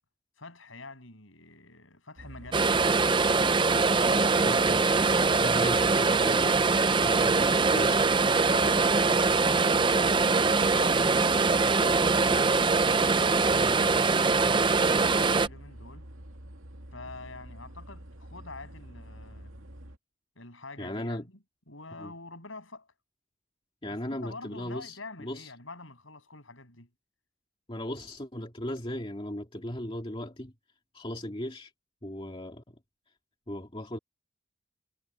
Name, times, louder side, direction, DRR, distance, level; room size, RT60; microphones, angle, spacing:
voice 1, 0.4-3.2 3.8-6.0 8.4-9.3 10.5-12.5 13.0-16.0 16.9-19.5 20.4-21.2 21.7-22.9 23.9-26.9, left 3 dB, 70° left, 7.3 m, -46 dB
sound 1, 2.1-20.0, equal, 75° right, 2.6 m, -47 dB
sound 2, 2.5-15.5, right 4 dB, 25° right, 0.5 m, -23 dB
voice 2, 4.4-4.9 5.4-6.7 7.0-8.2 13.6-13.9 20.8-21.3 22.0-22.1 23.8-25.5 27.7-30.5 30.9-31.7 32.0-32.8 33.5-34.0, left 1 dB, 25° left, 2.4 m, -37 dB
head